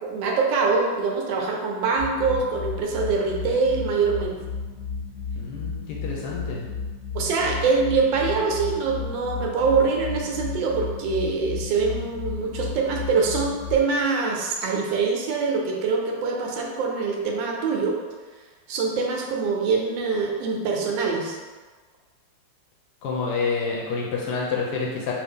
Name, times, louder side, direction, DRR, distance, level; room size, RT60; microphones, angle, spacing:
voice 1, 0.0-4.4 7.1-18.0 18.7-21.4, right 4 dB, 85° right, 0 dB, 1.3 m, -24 dB
sound 1, 2.0-13.8, left 5 dB, 40° left, 0.6 m, -33 dB
voice 2, 5.4-6.7 23.0-25.1, left 4 dB, 75° left, -3 dB, 1.1 m, -28 dB
3.0 x 2.7 x 3.5 m, 1.4 s
omnidirectional pair, 2.0 m